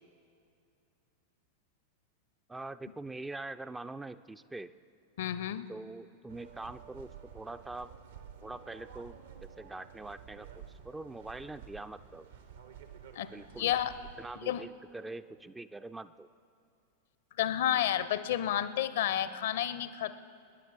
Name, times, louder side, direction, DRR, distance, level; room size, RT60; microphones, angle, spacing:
voice 1, 2.5-4.7 5.7-7.9 8.4-12.3 13.3-13.7 14.2-16.3, right 2 dB, 10° right, 11 dB, 0.3 m, -44 dB
voice 2, 5.2-5.7 13.1-13.3 13.6-13.9 14.4-14.7 17.4-20.2, left 11 dB, 55° left, 15 dB, 0.5 m, -31 dB
sound 1, 6.3-14.4, right 8 dB, 65° right, 0.8 m, -51 dB
25.5 x 10.5 x 4.1 m, 2.5 s
figure-of-eight pair, 90°, 0 cm